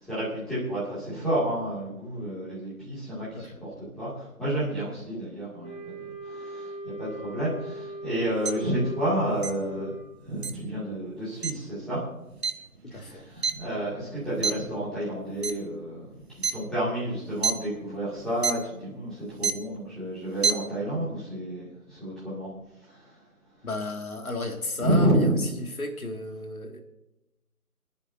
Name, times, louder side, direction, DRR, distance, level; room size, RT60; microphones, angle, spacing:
voice 1, 0.0-9.9 10.2-12.0 12.9-22.5 22.8-23.2 24.8-25.4, right 1 dB, ahead, -12 dB, 2.3 m, -30 dB
Wind instrument woodwind instrument, 5.6-10.1, right 1 dB, 30° right, 3.3 m, -39 dB
sound 1, 8.5-8.6 9.4-9.5 10.4-10.5 11.4-11.5 12.4-12.5 13.0-14.1 14.4-14.7 15.3-15.7 16.4-16.5 17.2-17.5 18.4-18.5 19.3-19.7 20.3-20.5, right 5 dB, 45° right, 0.8 m, -26 dB
voice 2, 12.9-13.2 23.6-25.4 25.8-26.8, left 2 dB, 70° left, 4 dB, 2.3 m, -33 dB
27.0 x 11.0 x 2.7 m, 0.96 s
figure-of-eight pair, 155°, 44 cm